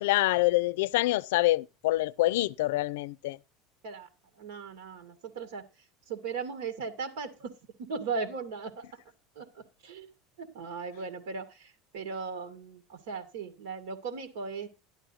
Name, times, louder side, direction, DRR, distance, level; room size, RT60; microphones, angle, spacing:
voice 1, 0.0-3.4, left 18 dB, 80° left, 0.5 m, -26 dB
voice 2, 4.4-5.6 6.1-8.9 9.4-10.1 10.4-14.7, right 5 dB, 75° right, 2.1 m, -38 dB
13.0 x 12.0 x 2.8 m
supercardioid pair, 170°, 0 cm